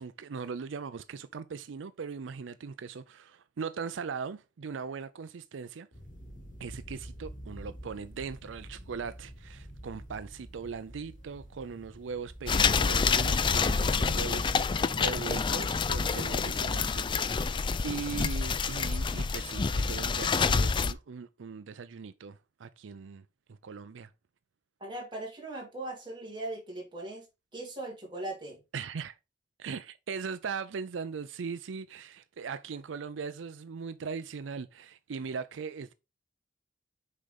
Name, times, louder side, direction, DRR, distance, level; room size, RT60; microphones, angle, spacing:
voice 1, 0.0-5.9 6.6-17.6 17.8-24.1 28.7-29.2 29.6-35.9, right 5 dB, 85° right, 0.5 m, -39 dB
sound 1, 5.9-14.9, equal, 45° left, 3.1 m, -48 dB
sound 2, 12.5-20.9, left 5 dB, 25° left, 0.4 m, -27 dB
voice 2, 24.8-27.2 27.5-28.6, right 2 dB, 25° right, 2.9 m, -39 dB
6.5 x 4.9 x 4.0 m
head